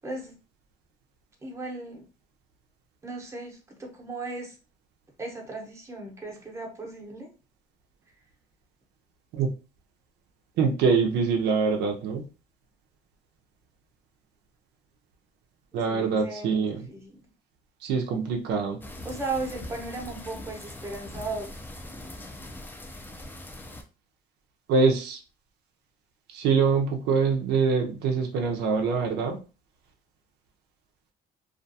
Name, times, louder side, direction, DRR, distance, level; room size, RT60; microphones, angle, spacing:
voice 1, 0.0-0.4 1.4-2.0 3.0-4.6 5.2-7.3 15.9-17.2 19.0-21.5, right 3 dB, 15° right, 0 dB, 0.8 m, -36 dB
voice 2, 10.6-12.2 15.7-16.8 17.8-18.8 24.7-25.2 26.3-29.4, right 5 dB, 80° right, 2 dB, 0.5 m, -24 dB
sound 1, 18.8-23.8, left 1 dB, 10° left, 0.5 m, -41 dB
2.4 x 2.3 x 2.6 m, 0.33 s
cardioid pair, 110°, 17 cm